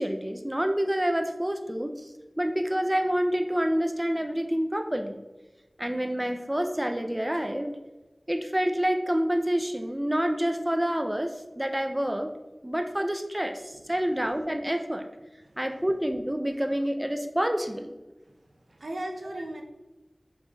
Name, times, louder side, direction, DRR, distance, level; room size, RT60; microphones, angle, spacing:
voice 1, 0.0-1.9 2.4-5.2 5.8-7.8 8.3-12.3 12.6-15.0 15.6-17.9 19.3-19.4, equal, 15° right, 6 dB, 0.3 m, -28 dB
voice 2, 18.3-19.6, right 1 dB, 85° right, 2 dB, 0.5 m, -38 dB
4.9 x 3.9 x 2.2 m, 1.1 s
wide cardioid pair, 50°, 0 cm